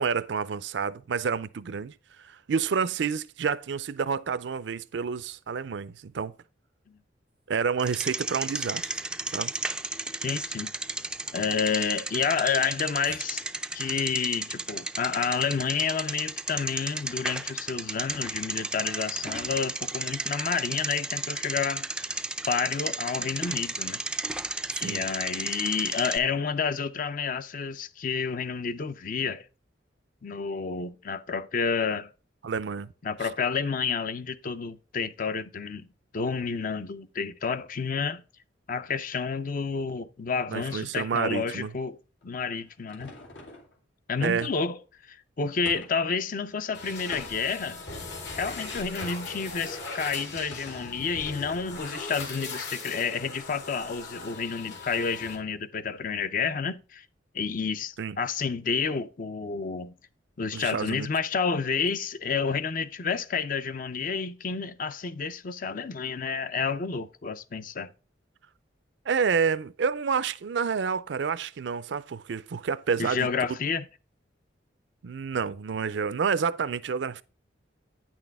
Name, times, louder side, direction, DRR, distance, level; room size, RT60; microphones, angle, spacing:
voice 1, 0.0-6.3 7.5-8.9 9.3-9.5 24.7-25.0 32.4-32.9 40.5-41.7 44.2-44.5 58.0-58.2 60.5-61.1 69.1-73.6 75.0-77.2, right 6 dB, 70° right, 0.4 m, -29 dB
Bicycle, 7.8-26.2, right 2 dB, 5° right, 0.3 m, -34 dB
voice 2, 10.2-10.7 11.3-13.4 13.7-22.1 22.5-24.0 24.8-29.4 30.2-32.1 33.0-35.9 36.1-38.2 38.7-42.0 42.2-43.1 44.1-44.8 45.1-47.8 48.3-57.1 57.3-59.9 60.4-67.9 73.0-73.9, left 5 dB, 45° left, 0.5 m, -30 dB
sound 1, 42.2-43.8 45.7-46.1 47.1-47.7 49.0-49.4 50.5-51.0, left 2 dB, 85° left, 2.4 m, -45 dB
sound 2, 46.7-55.4, left 3 dB, 70° left, 2.4 m, -39 dB
9.2 x 6.1 x 3.5 m
head